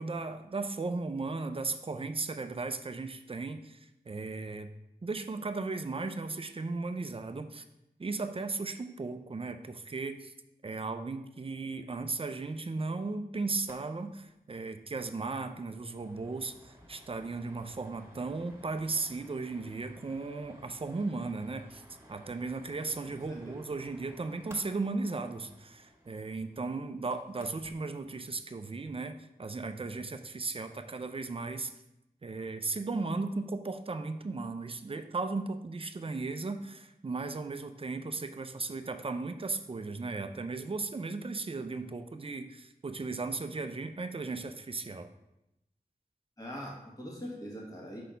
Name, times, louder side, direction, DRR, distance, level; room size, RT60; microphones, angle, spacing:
voice 1, 0.0-4.7 5.0-7.6 8.0-10.3 10.6-21.8 22.1-31.7 32.2-45.1, right 3 dB, 35° right, 8 dB, 0.5 m, -36 dB
sound 1, 13.6-13.8 14.1-14.2 14.5-14.7 15.1-27.8, equal, 15° right, 1.9 m, -57 dB
voice 2, 23.1-23.6 46.4-48.0, equal, 25° left, -3 dB, 1.4 m, -43 dB
5.6 x 4.1 x 5.1 m, 0.88 s
wide cardioid pair, 80°, 16 cm